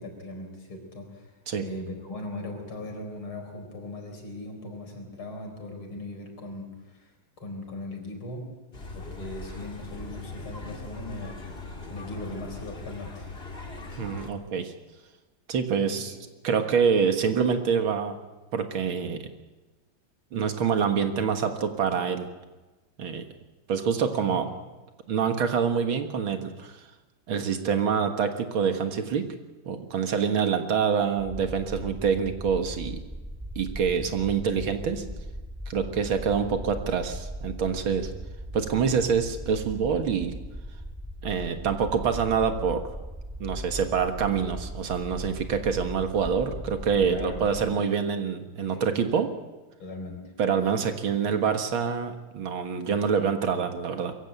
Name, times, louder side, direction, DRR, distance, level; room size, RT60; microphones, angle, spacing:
voice 1, 0.0-8.6 8.9-11.5 11.9-13.3 15.9-16.2 24.2-24.4 47.1-47.7 48.7-49.0 49.8-50.3 51.3-51.4, left 2 dB, 85° left, 3 dB, 5.0 m, -39 dB
sound 1, 8.7-14.3, left 3 dB, 30° left, 2.4 m, -40 dB
voice 2, 14.0-14.7 15.5-16.1 16.4-18.2 18.5-19.2 20.3-22.3 23.0-23.2 23.7-24.5 25.1-26.7 27.3-29.3 29.7-33.0 33.6-35.0 35.7-38.1 38.5-40.3 41.2-42.8 43.4-49.3 50.4-54.1, right 6 dB, 75° right, 7 dB, 2.3 m, -26 dB
sound 2, 31.2-47.7, equal, 5° right, 1.3 m, -39 dB
22.5 x 15.5 x 9.1 m, 1.2 s
omnidirectional pair, 2.2 m